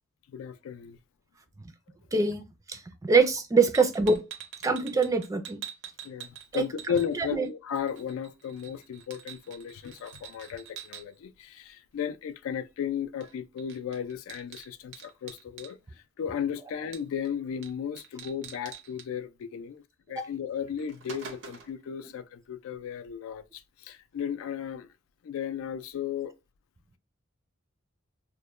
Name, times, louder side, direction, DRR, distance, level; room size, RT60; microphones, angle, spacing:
voice 1, 0.3-1.0 6.0-15.8 16.2-19.8 20.1-24.9 25.2-26.3, left 8 dB, 85° left, 0.3 m, -35 dB
voice 2, 2.1-4.2 4.6-5.6 6.5-6.7 7.1-7.5, right 4 dB, 15° right, 0.3 m, -24 dB
sound 1, 3.7-7.5 7.8-11.0 13.2-13.3 13.6-15.7 16.9-17.3 17.6-17.7 18.0-19.1 20.2-20.3 20.6-21.8, right 7 dB, 65° right, 0.6 m, -45 dB
2.2 x 2.1 x 3.0 m
head